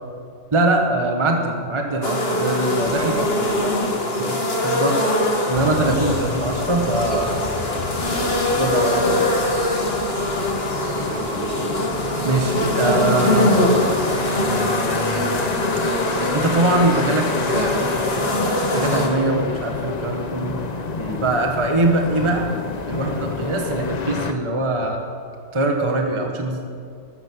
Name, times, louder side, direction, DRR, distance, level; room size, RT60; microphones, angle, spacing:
voice 1, 0.5-3.2 4.2-4.3 4.6-5.1 5.5-7.4 8.6-9.3 12.2-13.5 16.3-18.1 18.7-20.6 21.2-22.5 22.9-25.0 25.5-26.7, right 2 dB, 20° right, 2 dB, 1.2 m, -22 dB
sound 1, 2.0-19.1, left 1 dB, 35° left, 2.0 m, -22 dB
voice 2, 2.8-4.4 7.8-7.9 10.9-11.9 20.2-20.3 20.9-21.2, right 1 dB, 55° right, 0 dB, 2.7 m, -32 dB
sound 2, 5.5-24.3, left 4 dB, 55° left, 0.4 m, -29 dB
14.0 x 13.5 x 6.3 m, 2.2 s
omnidirectional pair, 1.8 m